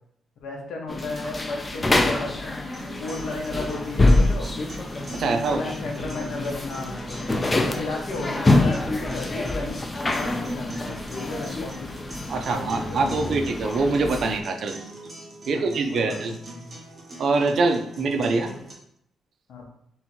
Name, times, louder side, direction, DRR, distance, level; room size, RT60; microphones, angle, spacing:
voice 1, 0.4-2.6 3.0-4.5 5.2-7.0 7.5-9.8 10.1-11.9 12.4-13.4 15.4-16.4 18.1-18.6 19.5-19.6, left 3 dB, 75° left, 0 dB, 1.0 m, -34 dB
sound 1, 0.9-14.4, left 2 dB, 20° left, 0.4 m, -26 dB
sound 2, 2.7-18.7, right 1 dB, 20° right, 0.9 m, -43 dB
voice 2, 5.1-5.7 12.3-14.7 15.5-16.3 17.2-18.5, right 3 dB, 55° right, 6 dB, 0.5 m, -24 dB
3.6 x 2.9 x 4.3 m, 0.72 s
cardioid pair, 145°, 0 cm